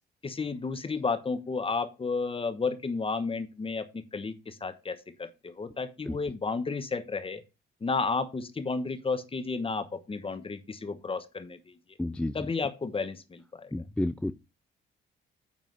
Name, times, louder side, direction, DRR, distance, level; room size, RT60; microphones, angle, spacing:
voice 1, 0.2-7.4 7.8-11.7 12.3-13.7, left 4 dB, 25° left, 12 dB, 1.1 m, -32 dB
voice 2, 12.0-12.5 13.7-14.3, left 1 dB, 5° left, 11 dB, 0.4 m, -31 dB
9.5 x 3.7 x 6.3 m, 0.28 s
cardioid pair, 90°, 20 cm